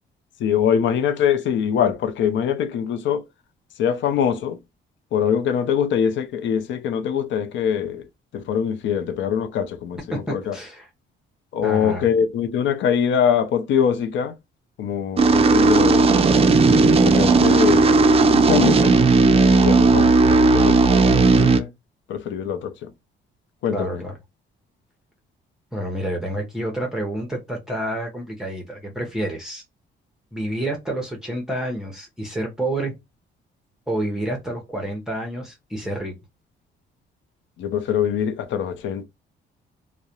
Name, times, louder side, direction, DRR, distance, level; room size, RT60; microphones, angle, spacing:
voice 1, 0.4-3.2 3.8-4.6 5.1-8.0 8.3-10.6 11.5-14.3 14.8-16.1 16.7-17.9 18.3-18.9 19.4-21.7 22.1-22.9 23.6-24.0 37.6-39.0, left 8 dB, 70° left, 0.5 m, -23 dB
voice 2, 10.1-10.9 11.6-12.1 23.7-24.1 25.7-29.6 30.3-32.9 33.9-36.1, right 1 dB, 5° right, 0.7 m, -28 dB
sound 1, 15.2-21.6, right 3 dB, 30° right, 0.4 m, -15 dB
2.3 x 2.1 x 2.8 m
cardioid pair, 90°, 20 cm